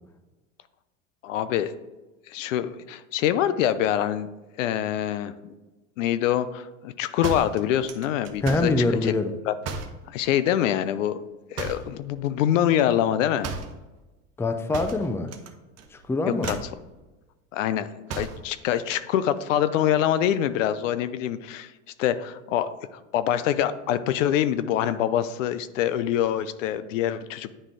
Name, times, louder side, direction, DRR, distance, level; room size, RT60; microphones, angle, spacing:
voice 1, 1.2-1.7 2.3-4.3 4.6-5.3 6.0-9.1 9.5-9.6 10.1-11.2 11.5-13.5 16.4-16.6 17.5-21.7 22.0-27.5, left 11 dB, 80° left, 13 dB, 0.6 m, -25 dB
sound 1, 7.2-8.8 9.6-10.0 11.5-12.0 13.4-13.8 14.7-15.5 15.8-16.0 16.4-16.8 18.1-18.5, right 4 dB, 40° right, 0.9 m, -34 dB
voice 2, 8.4-9.3 14.4-15.3 15.9-16.5, left 2 dB, 5° left, 8 dB, 0.5 m, -24 dB
9.7 x 3.6 x 3.4 m, 1.1 s
hypercardioid pair, 95°, 38 cm